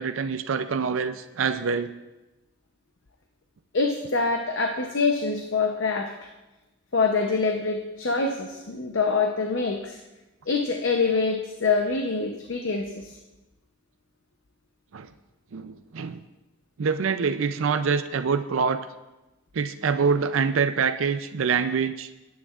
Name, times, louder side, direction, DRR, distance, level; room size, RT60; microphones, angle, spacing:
voice 1, 0.0-1.9 14.9-15.1 15.5-16.2 16.8-18.9 19.5-22.1, right 5 dB, 70° right, 10 dB, 0.5 m, -25 dB
voice 2, 3.7-6.1 6.9-10.0 10.5-13.1, left 4 dB, 65° left, 3 dB, 0.8 m, -25 dB
19.5 x 9.4 x 2.4 m, 1.0 s
head